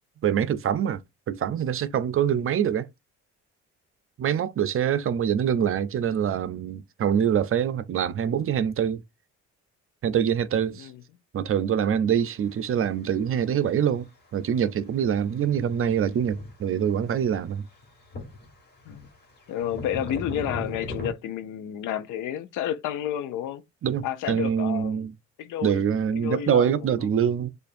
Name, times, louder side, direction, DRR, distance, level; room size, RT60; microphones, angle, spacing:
voice 1, 0.2-1.0 1.3-2.9 4.2-9.0 10.0-10.9 11.3-14.1 14.3-17.7 23.8-25.1 25.6-27.5, right 8 dB, 45° right, 0.5 m, -25 dB
sound 1, 15.5-15.9 16.1-16.7 17.3-17.4 17.8-18.5 18.8-21.1, left 2 dB, 35° left, 1.6 m, -36 dB
voice 2, 19.5-23.6 24.0-25.0 25.4-25.8 26.2-27.1, left 10 dB, 90° left, 0.6 m, -31 dB
6.5 x 2.5 x 2.5 m
cardioid pair, 90°, 30 cm